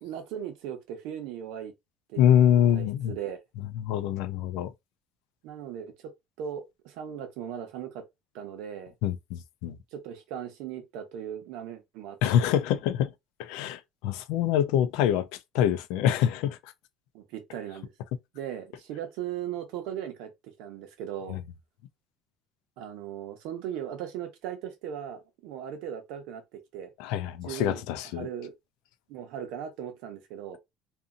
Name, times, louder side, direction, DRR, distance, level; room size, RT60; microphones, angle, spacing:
voice 1, 0.0-1.7 2.1-3.4 5.4-6.1 6.4-8.0 8.3-8.9 9.9-12.5 17.1-17.9 18.3-21.4 22.8-26.9 27.5-27.8 28.1-28.5 29.1-30.6, right 9 dB, 75° right, 0.8 m, -38 dB
voice 2, 2.2-3.1 3.8-4.7 9.0-9.8 12.2-13.1 13.4-15.3 15.5-16.6 21.3-21.4 27.0-28.3, left 10 dB, 80° left, 0.4 m, -25 dB
2.7 x 2.6 x 2.5 m
cardioid pair, 150°, 0 cm